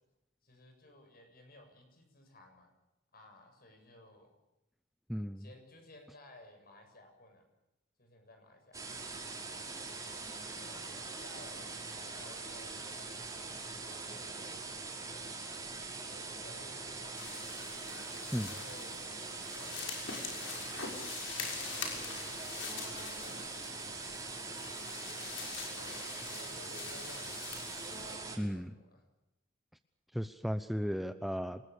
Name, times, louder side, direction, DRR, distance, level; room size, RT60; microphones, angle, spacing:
voice 1, 0.4-2.7 3.1-4.3 5.4-7.4 8.0-9.0 10.6-15.0 15.6-17.6 18.5-18.9 19.5-20.0 20.3-23.7 24.2-24.5 25.5-29.0, left 1 dB, 50° left, 4 dB, 7.5 m, -58 dB
voice 2, 5.1-5.4 18.3-18.5 28.4-28.7 30.1-31.6, equal, ahead, 10 dB, 0.7 m, -35 dB
sound 1, 8.7-28.4, right 3 dB, 20° right, 5.5 m, -43 dB
sound 2, 17.2-28.2, left 5 dB, 80° left, 6.3 m, -44 dB
27.5 x 20.0 x 7.1 m, 0.93 s
head